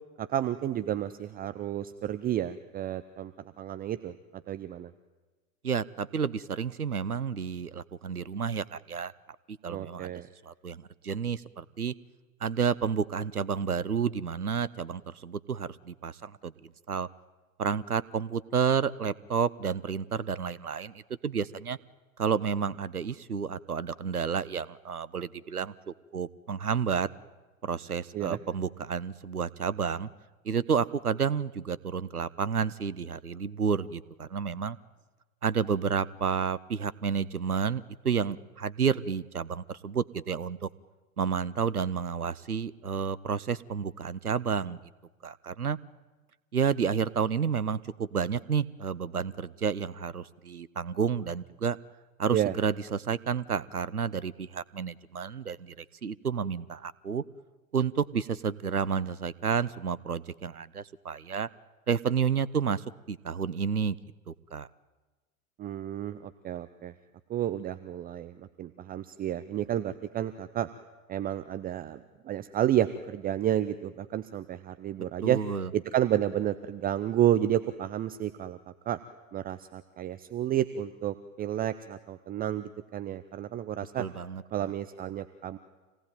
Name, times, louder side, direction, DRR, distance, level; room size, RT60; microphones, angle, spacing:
voice 1, 0.2-4.9 9.7-10.3 28.1-28.4 52.3-52.6 65.6-66.9 67.3-70.7 71.1-75.4 75.7-79.0 79.3-84.1 84.5-85.6, right 11 dB, 20° right, 12 dB, 0.7 m, -31 dB
voice 2, 5.6-9.1 9.5-10.1 10.4-11.9 12.4-16.5 16.9-17.1 17.6-21.8 22.2-27.1 27.6-30.1 30.4-34.8 35.4-40.7 41.2-44.8 45.2-45.8 46.5-51.8 52.2-57.2 57.7-61.5 61.9-64.0 64.3-64.7 75.2-75.7 84.0-84.7, right 6 dB, 90° right, 19 dB, 0.8 m, -30 dB
27.0 x 18.0 x 9.2 m, 1.3 s
figure-of-eight pair, 90°, 43 cm